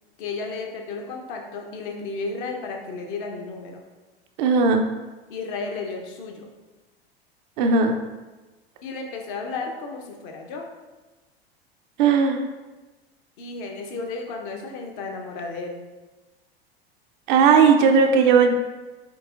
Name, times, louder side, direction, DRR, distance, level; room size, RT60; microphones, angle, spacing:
voice 1, 0.2-3.8 5.3-6.5 8.8-10.7 13.4-15.8, left 4 dB, 50° left, 1 dB, 0.8 m, -33 dB
voice 2, 4.4-4.8 7.6-8.0 12.0-12.4 17.3-18.6, right 5 dB, 50° right, 4 dB, 0.5 m, -17 dB
7.7 x 2.7 x 2.4 m, 1.2 s
figure-of-eight pair, 85°, 31 cm